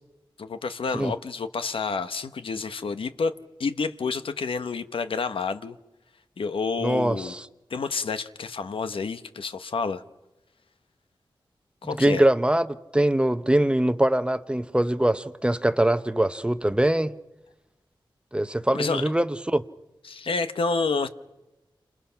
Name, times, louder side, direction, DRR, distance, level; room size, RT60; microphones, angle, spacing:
voice 1, 0.4-3.3 3.6-5.8 6.4-7.3 7.7-10.0 11.8-12.2 18.7-19.0 20.0-21.1, left 4 dB, 90° left, 1.0 m, -29 dB
voice 2, 6.8-7.5 11.8-12.7 12.9-17.1 18.3-19.6, right 1 dB, 10° right, 0.8 m, -23 dB
28.5 x 27.0 x 5.8 m
wide cardioid pair, 105°, 9 cm